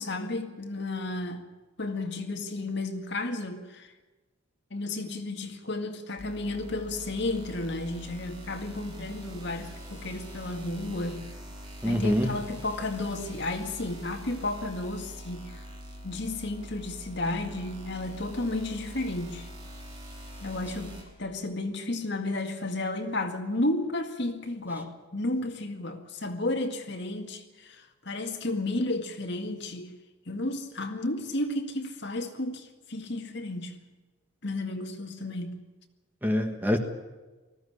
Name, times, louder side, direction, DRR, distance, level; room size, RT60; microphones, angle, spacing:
voice 1, 0.0-1.5 1.8-3.9 4.7-11.3 11.8-15.6 16.0-19.5 20.4-29.9 30.3-33.8 34.4-35.6, left 2 dB, 55° left, 2.1 m, -33 dB
sound 1, 6.2-21.0, equal, 25° right, 4.8 m, -44 dB
voice 2, 11.8-12.3 36.2-36.8, left 1 dB, 10° right, 1.4 m, -25 dB
19.5 x 15.0 x 9.9 m
head